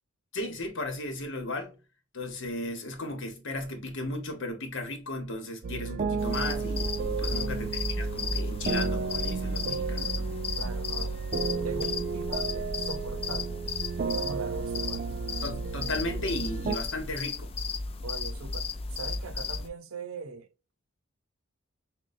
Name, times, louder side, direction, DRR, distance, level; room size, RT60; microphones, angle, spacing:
voice 1, 0.3-1.8 2.1-10.1 15.4-17.5, left 1 dB, 65° left, 1.2 m, -35 dB
sound 1, 5.6-16.8, right 4 dB, 45° right, 0.3 m, -32 dB
sound 2, 6.2-19.7, left 4 dB, 30° left, 0.4 m, -35 dB
voice 2, 7.2-7.7 9.7-9.8 10.6-11.2 11.6-13.6 14.0-15.1 18.0-20.5, right 4 dB, 85° right, 0.7 m, -41 dB
6.1 x 2.2 x 2.6 m
head